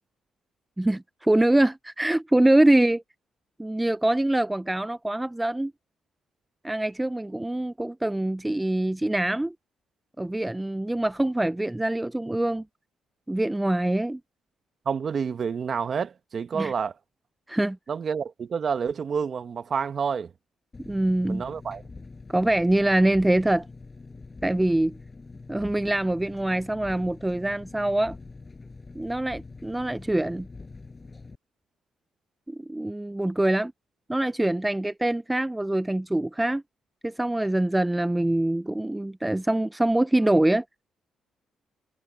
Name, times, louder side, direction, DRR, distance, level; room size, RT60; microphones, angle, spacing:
voice 1, 0.8-3.0 3.6-5.7 6.6-9.5 10.2-12.6 13.3-14.2 16.5-16.7 17.5-17.8 20.9-21.4 22.3-23.7 24.4-25.0 25.5-28.2 28.9-30.5 32.5-33.7 34.1-36.6 37.0-40.6, right 1 dB, 10° right, 0.4 m, -24 dB
voice 2, 14.8-16.9 17.9-20.3 21.3-21.8, right 6 dB, 50° right, 1.4 m, -29 dB
Engine, 20.7-31.4, left 3 dB, 25° left, 6.4 m, -44 dB
cardioid pair, 90°, 0 cm